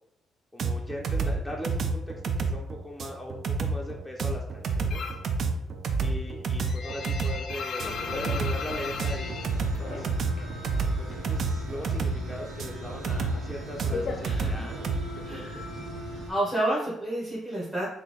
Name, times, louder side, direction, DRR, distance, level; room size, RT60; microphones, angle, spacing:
voice 1, 0.5-5.0 6.0-10.1 11.0-15.6, left 1 dB, 5° left, -2 dB, 0.5 m, -40 dB
sound 1, 0.6-15.0, right 4 dB, 60° right, 0.4 m, -29 dB
sound 2, 4.9-5.3 5.7-10.6 10.8-11.9 12.2-15.0, left 5 dB, 60° left, 0.4 m, -37 dB
sound 3, 7.8-16.3, right 1 dB, 80° right, 0.9 m, -40 dB
voice 2, 15.3-15.6 16.3-17.9, right 1 dB, 20° right, -8 dB, 1.3 m, -29 dB
3.9 x 2.6 x 3.1 m, 0.78 s
cardioid pair, 90°, 0 cm